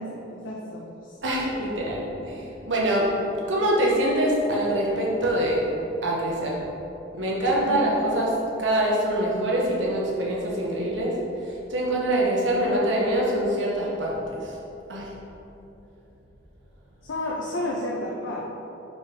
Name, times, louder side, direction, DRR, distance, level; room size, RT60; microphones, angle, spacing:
voice 1, 0.0-1.1 7.6-7.8 17.0-18.5, left 1 dB, 85° left, -4 dB, 0.7 m, -31 dB
voice 2, 1.2-5.6 6.0-6.6 7.1-11.2 11.7-14.5 14.9-15.1, right 1 dB, 70° right, -4 dB, 1.3 m, -24 dB
5.1 x 4.6 x 5.3 m, 2.9 s
head